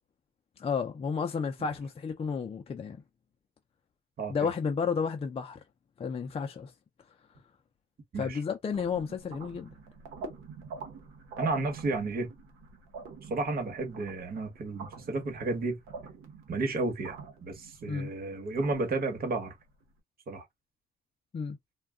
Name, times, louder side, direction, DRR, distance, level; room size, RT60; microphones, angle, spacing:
voice 1, 0.6-3.0 4.3-5.6 6.0-6.7 8.2-9.7 17.9-18.1 21.3-21.6, left 6 dB, 30° left, 0.4 m, -32 dB
voice 2, 4.2-4.5 8.1-8.4 11.4-12.3 13.2-15.8 16.5-19.5 20.3-20.4, right 3 dB, 50° right, 1.2 m, -32 dB
sound 1, 8.7-19.8, right 4 dB, 90° right, 0.9 m, -46 dB
2.3 x 2.2 x 3.5 m
cardioid pair, 90°, 20 cm